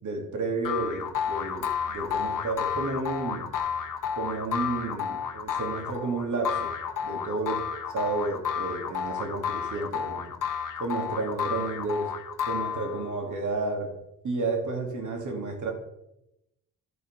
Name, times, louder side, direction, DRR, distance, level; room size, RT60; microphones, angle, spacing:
voice 1, 0.0-3.5 4.1-6.7 7.0-7.6 7.9-10.4 10.8-12.1 12.5-13.9 14.2-15.7, right 3 dB, 60° right, 2 dB, 2.7 m, -31 dB
sound 1, 0.6-13.2, left 8 dB, 65° left, 1.4 m, -31 dB
12.5 x 4.3 x 5.8 m, 0.87 s
supercardioid pair, 60°, 34 cm